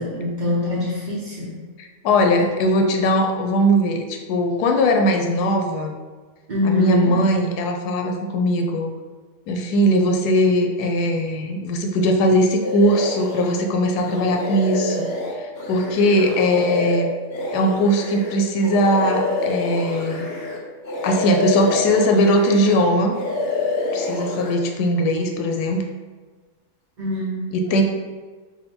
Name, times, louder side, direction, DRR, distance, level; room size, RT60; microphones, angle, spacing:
voice 1, 0.0-1.6 6.5-7.1 16.5-16.6 27.0-27.6, left 1 dB, 50° right, -5 dB, 0.6 m, -24 dB
voice 2, 1.8-5.9 6.6-8.9 9.5-15.1 15.4-17.1 17.5-20.3 21.0-23.1 23.9-25.9 27.5-27.8, equal, 85° left, 3 dB, 1.1 m, -20 dB
sound 1, 12.6-13.6 14.0-20.6 20.8-22.8 23.1-24.5, left 2 dB, 60° left, 0.6 m, -27 dB
3.6 x 2.6 x 4.2 m, 1.4 s
omnidirectional pair, 1.7 m